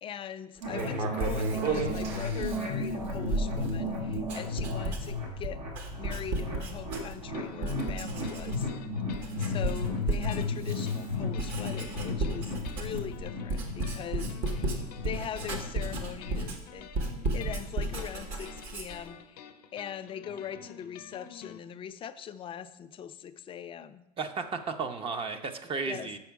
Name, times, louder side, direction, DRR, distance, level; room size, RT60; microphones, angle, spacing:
voice 1, 0.0-5.6 6.0-8.7 9.4-16.9 17.3-19.4 19.7-24.0 25.9-26.1, left 8 dB, 25° left, 10 dB, 0.4 m, -41 dB
Writing, 0.6-7.3 7.6-8.8 9.1-19.1, right 2 dB, 55° right, 1.5 m, -34 dB
sound 1, 0.6-16.5, left 2 dB, 80° right, 1.7 m, -35 dB
sound 2, 7.3-21.6, left 8 dB, 75° left, 0.7 m, -49 dB
voice 2, 24.2-26.2, right 4 dB, 25° right, 7 dB, 0.6 m, -34 dB
7.0 x 5.0 x 4.6 m, 0.95 s
hypercardioid pair, 95°, 20 cm